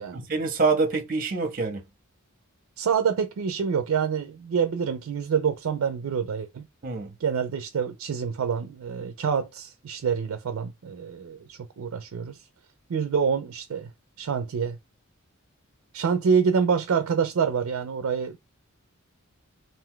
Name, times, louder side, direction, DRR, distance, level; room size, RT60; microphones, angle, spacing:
voice 1, 0.1-1.8 6.8-7.1, right 4 dB, 45° right, 0.7 m, -26 dB
voice 2, 2.8-6.7 7.2-12.4 12.9-13.9 14.2-14.8 15.9-18.4, right 6 dB, 80° right, 0.4 m, -26 dB
2.5 x 2.3 x 3.7 m
head